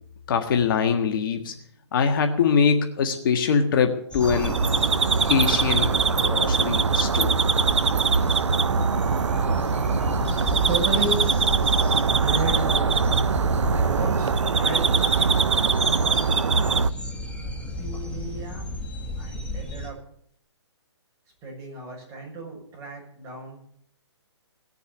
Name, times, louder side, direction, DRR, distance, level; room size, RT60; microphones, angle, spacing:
voice 1, 0.3-1.5 1.9-4.6 5.3-7.4, left 6 dB, 50° left, 5 dB, 1.7 m, -23 dB
sound 1, 4.1-19.9, equal, 5° left, 1.8 m, -33 dB
sound 2, 4.2-16.9, right 5 dB, 90° right, 0.6 m, -22 dB
voice 2, 10.3-11.3 12.2-13.0 13.7-15.3 17.8-18.7 19.2-20.0 21.4-23.6, right 3 dB, 20° right, -2 dB, 6.9 m, -33 dB
18.5 x 7.0 x 9.2 m, 0.65 s
hypercardioid pair, 145°, 15 cm